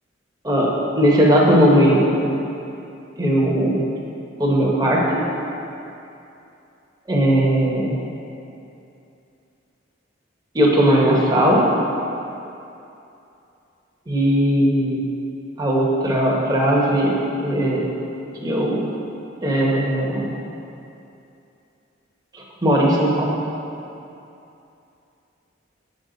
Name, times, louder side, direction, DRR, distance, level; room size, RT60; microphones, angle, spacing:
voice 1, 0.4-2.4 3.2-3.8 4.4-5.2 7.1-8.0 10.5-11.6 14.1-15.0 15.6-17.8 18.4-18.8 19.4-20.3 22.3-23.3, equal, 20° right, -4 dB, 0.9 m, -18 dB
7.1 x 6.5 x 3.9 m, 2.8 s
head